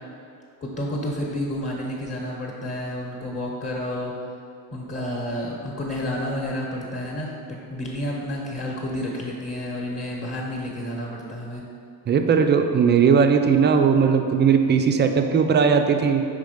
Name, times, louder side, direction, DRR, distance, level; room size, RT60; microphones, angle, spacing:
voice 1, 0.6-4.1 4.7-11.6, left 1 dB, 25° left, -3 dB, 1.1 m, -30 dB
voice 2, 12.1-16.2, right 6 dB, 25° right, 5 dB, 0.4 m, -18 dB
5.1 x 3.7 x 5.1 m, 2.5 s
supercardioid pair, 80°, 49 cm